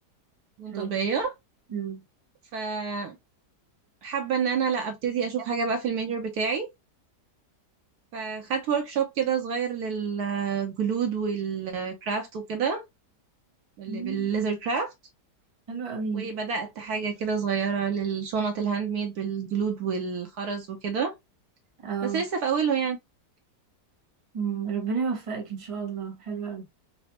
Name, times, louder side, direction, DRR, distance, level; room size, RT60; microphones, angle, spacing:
voice 1, 0.6-1.3 2.5-3.2 4.0-6.7 8.1-12.8 13.8-14.9 16.1-21.1 22.0-23.0, right 6 dB, 70° right, 1.1 m, -28 dB
voice 2, 13.9-14.3 15.7-16.3 21.8-22.2 24.3-26.6, right 6 dB, 25° right, 0.9 m, -31 dB
4.1 x 2.0 x 2.8 m
omnidirectional pair, 1.8 m